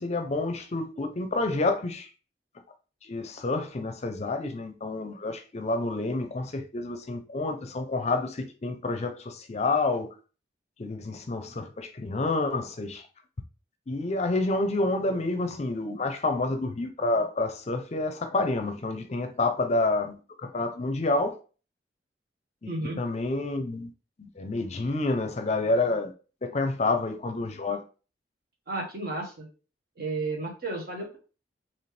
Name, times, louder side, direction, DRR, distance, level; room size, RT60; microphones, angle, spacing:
voice 1, 0.0-2.1 3.0-10.1 10.8-13.0 13.9-21.4 22.6-22.7 23.0-23.9 24.2-26.1 26.4-27.8, left 2 dB, 40° left, 0.5 m, -28 dB
voice 2, 22.7-23.0 28.7-29.5 30.0-31.2, right 2 dB, 60° right, 1.5 m, -32 dB
4.3 x 3.0 x 3.3 m
head